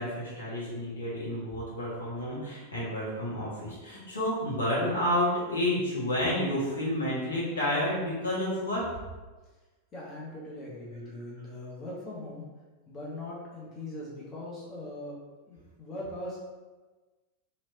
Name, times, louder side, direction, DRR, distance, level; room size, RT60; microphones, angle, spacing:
voice 1, 0.0-8.8, left 1 dB, 70° left, -7 dB, 1.2 m, -30 dB
voice 2, 9.9-12.5 12.9-16.4, left 1 dB, 25° left, -6 dB, 0.9 m, -41 dB
3.1 x 2.9 x 2.7 m, 1.3 s
figure-of-eight pair, 90°, 0 cm